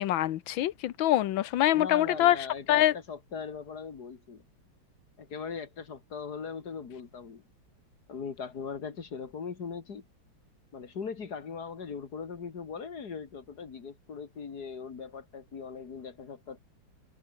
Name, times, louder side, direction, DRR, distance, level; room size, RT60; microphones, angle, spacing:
voice 1, 0.0-2.9, left 13 dB, 70° left, 1.5 m, -25 dB
voice 2, 1.7-4.4 5.2-7.4 8.1-10.1 10.7-16.6, left 6 dB, 50° left, 2.5 m, -39 dB
open air
omnidirectional pair, 2.3 m